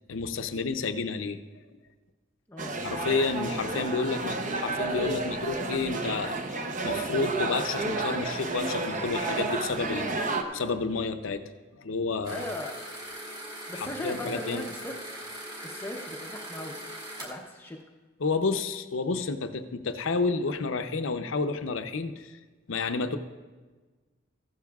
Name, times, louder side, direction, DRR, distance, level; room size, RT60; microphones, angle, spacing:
voice 1, 0.1-1.4 2.8-6.4 6.8-10.1 10.5-11.4 11.8-12.4 13.8-14.6 18.2-22.3 22.7-23.2, left 4 dB, 70° left, 8 dB, 0.6 m, -30 dB
voice 2, 2.5-2.8 12.3-12.8 13.7-15.0 15.6-16.8 17.2-17.8, left 1 dB, 10° left, 0 dB, 0.6 m, -38 dB
sound 1, 2.6-10.4, right 3 dB, 40° right, 0.7 m, -31 dB
sound 2, 12.2-17.3, right 1 dB, 20° right, 1.9 m, -41 dB
15.0 x 12.0 x 2.3 m, 1.3 s
head